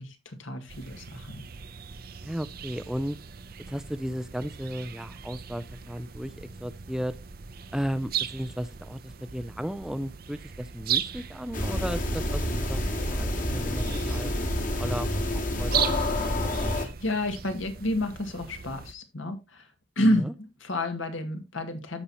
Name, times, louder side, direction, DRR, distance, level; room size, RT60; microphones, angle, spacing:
voice 1, 0.0-1.5 16.5-19.7 20.0-22.0, left 1 dB, 75° left, 7 dB, 1.9 m, -30 dB
sound 1, 0.7-18.9, right 8 dB, 50° right, 0.6 m, -38 dB
voice 2, 2.2-3.2 3.7-7.2 7.7-14.3 14.8-15.1 15.3-17.0 20.2-20.3, equal, 5° right, 13 dB, 0.4 m, -35 dB
sound 2, 11.5-16.9, left 1 dB, 40° left, 1.8 m, -28 dB
14.0 x 5.6 x 2.9 m, 0.26 s
head